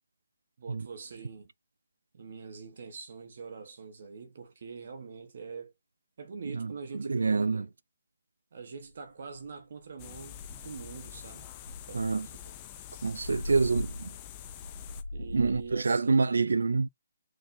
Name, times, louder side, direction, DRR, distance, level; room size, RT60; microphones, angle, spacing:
voice 1, 0.6-1.5 2.1-5.7 6.2-7.7 8.5-11.5 11.9-12.5 13.5-13.6 15.1-16.3, right 5 dB, 55° right, 1.2 m, -44 dB
voice 2, 7.1-7.6 11.9-12.3 13.0-14.1 15.3-16.9, right 4 dB, 85° right, 0.4 m, -26 dB
sound 1, 8.9-9.0 9.4-9.7 10.0-10.1 10.4-11.1 11.6-15.8, left 1 dB, 85° left, 1.3 m, -41 dB
sound 2, 10.0-15.0, left 12 dB, 25° left, 0.6 m, -46 dB
4.8 x 3.5 x 2.7 m
hypercardioid pair, 160°, 0 cm